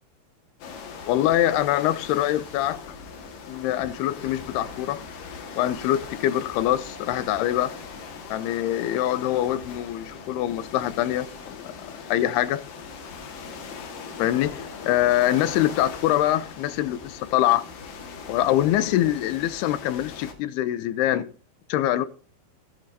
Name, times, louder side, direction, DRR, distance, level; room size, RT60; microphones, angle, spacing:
sound 1, 0.6-20.3, left 5 dB, 65° left, 3.3 m, -40 dB
voice 1, 1.1-2.9 3.5-5.0 5.5-7.7 8.3-12.6 14.2-17.7 18.3-21.3 21.7-22.1, left 13 dB, 90° left, 2.8 m, -24 dB
17.0 x 10.5 x 2.8 m
omnidirectional pair, 4.5 m